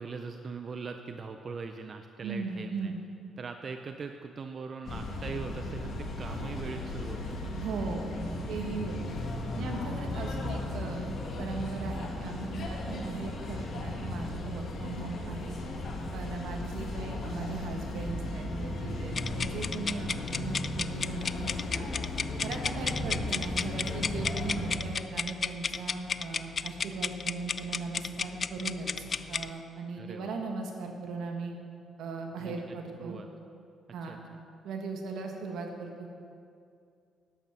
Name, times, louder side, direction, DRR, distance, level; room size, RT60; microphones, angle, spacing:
voice 1, 0.0-2.9 3.4-7.5 13.0-13.3 16.5-16.8 22.6-22.9 30.0-30.6 32.4-33.3 34.0-34.2, right 5 dB, 45° right, 6 dB, 0.5 m, -41 dB
voice 2, 2.2-3.0 7.6-9.2 9.5-15.6 16.1-21.9 22.4-31.5 32.0-33.2 33.9-34.2 34.6-36.1, right 4 dB, 80° right, 2 dB, 1.6 m, -38 dB
sound 1, 4.8-24.7, left 2 dB, 60° left, 1.8 m, -36 dB
sound 2, 19.1-29.5, left 5 dB, 45° left, 0.3 m, -33 dB
11.0 x 8.2 x 6.0 m, 2.4 s
cardioid pair, 90°, 0 cm